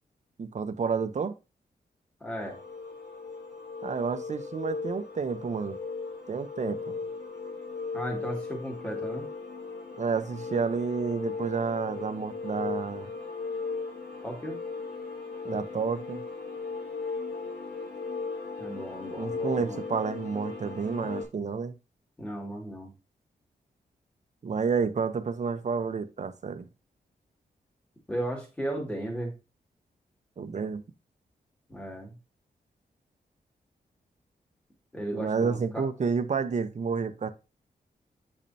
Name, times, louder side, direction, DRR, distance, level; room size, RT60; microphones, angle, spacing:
voice 1, 0.4-1.3 3.8-5.8 6.3-7.0 10.0-13.1 15.4-16.2 19.2-21.7 24.4-26.7 30.4-30.8 35.1-37.3, right 5 dB, 45° right, 0.9 m, -30 dB
voice 2, 2.2-2.6 7.9-9.3 14.2-14.6 18.6-19.8 22.2-22.9 28.1-29.3 31.7-32.2 34.9-35.9, right 1 dB, 5° left, 2.4 m, -35 dB
sound 1, 2.4-21.2, left 4 dB, 85° left, 4.5 m, -37 dB
8.2 x 5.3 x 2.8 m
wide cardioid pair, 100°, 16 cm